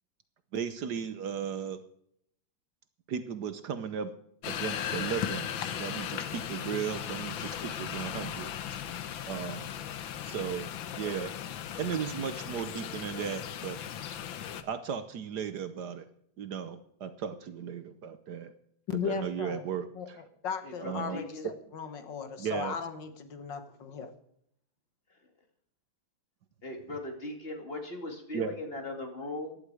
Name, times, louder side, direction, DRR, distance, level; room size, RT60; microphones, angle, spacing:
voice 1, 0.5-1.8 3.1-4.1 4.5-8.5 9.3-9.7 10.2-10.7 11.0-11.3 11.8-13.8 14.6-16.1 16.4-18.5 19.0-20.2 20.8-21.2 22.4-22.7 28.3-28.6, right 7 dB, 65° right, 11 dB, 1.4 m, -36 dB
sound 1, 4.4-14.6, left 9 dB, 85° left, 1.7 m, -37 dB
voice 2, 18.9-19.6 20.0-24.1, left 6 dB, 70° left, 9 dB, 1.9 m, -37 dB
voice 3, 20.6-21.5 26.6-29.6, left 2 dB, 30° left, 3 dB, 2.7 m, -39 dB
15.5 x 11.5 x 4.9 m, 0.70 s
omnidirectional pair, 2.1 m